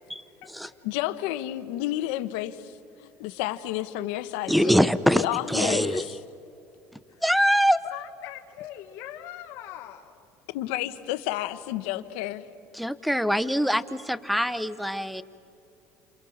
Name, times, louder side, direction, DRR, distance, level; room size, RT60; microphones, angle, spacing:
voice 1, 0.1-0.8 7.8-10.2, left 12 dB, 60° left, 1 dB, 1.6 m, -41 dB
voice 2, 0.8-2.7 3.2-4.9 5.1-6.1 10.5-12.5, left 14 dB, 90° left, 12 dB, 1.3 m, -31 dB
voice 3, 4.5-6.0 7.2-7.8 12.7-15.2, equal, ahead, 16 dB, 0.9 m, -23 dB
29.0 x 28.0 x 7.4 m, 2.8 s
cardioid pair, 130°, 5 cm